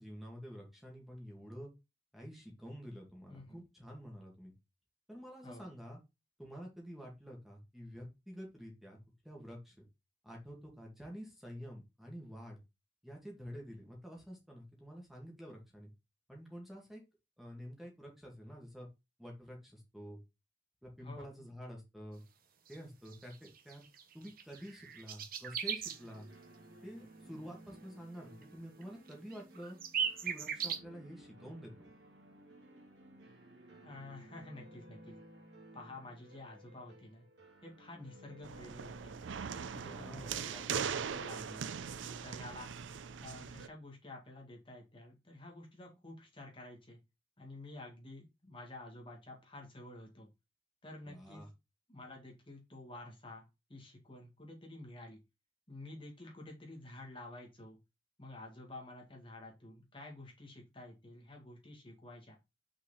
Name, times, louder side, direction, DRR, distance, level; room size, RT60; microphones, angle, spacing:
voice 1, 0.0-1.7 2.1-4.5 5.1-6.0 6.4-9.0 9.2-9.8 10.2-12.6 13.0-15.9 16.3-17.0 17.4-18.9 19.2-20.2 20.8-22.2 22.7-23.8 24.1-26.3 26.8-29.8 30.2-31.7 39.8-40.4 51.1-51.5, equal, ahead, -1 dB, 2.3 m, -49 dB
voice 2, 21.0-21.5 33.8-35.1 35.7-37.3 37.6-39.2 39.6-41.7 42.0-42.7 43.2-47.0 47.4-50.3 50.8-51.5 51.9-53.4 53.7-55.2 55.7-57.8 58.2-62.4, left 2 dB, 30° left, 0 dB, 2.2 m, -50 dB
sound 1, 22.7-22.8 23.1-26.0 28.4-28.5 28.8-28.9 29.1-30.8, right 7 dB, 50° right, 1.0 m, -38 dB
sound 2, 25.8-42.6, right 1 dB, 65° right, 2.2 m, -58 dB
sound 3, 38.4-43.7, right 7 dB, 85° right, 0.5 m, -40 dB
6.0 x 4.9 x 4.2 m, 0.24 s
head